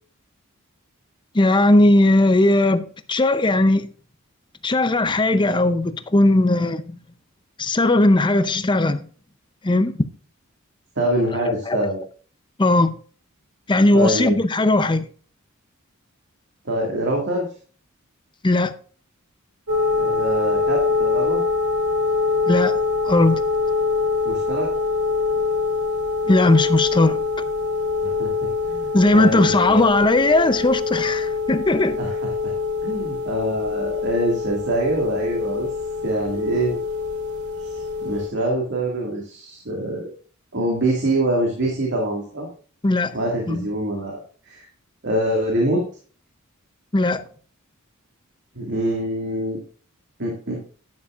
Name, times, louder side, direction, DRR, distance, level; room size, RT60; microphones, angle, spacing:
voice 1, 1.3-2.8 3.1-3.9 4.6-7.0 7.6-9.0 9.6-9.9 11.7-11.8 12.6-13.0 13.7-15.0 18.4-18.7 22.5-22.8 23.1-23.4 26.3-27.2 28.9-32.0 42.8-43.1 43.5-43.7 46.9-47.2, left 2 dB, 20° left, 0.6 m, -18 dB
voice 2, 11.0-12.0 13.9-14.4 16.7-17.5 19.9-21.4 24.2-24.7 28.0-29.9 32.0-32.5 32.8-35.7 36.0-36.8 37.6-40.1 40.5-42.5 43.1-44.2 44.5-44.6 45.0-45.8 48.6-49.6 50.2-50.6, right 1 dB, 55° right, 2.1 m, -25 dB
sound 1, 19.7-38.3, left 4 dB, 90° right, 3.5 m, -24 dB
11.0 x 9.7 x 2.5 m
head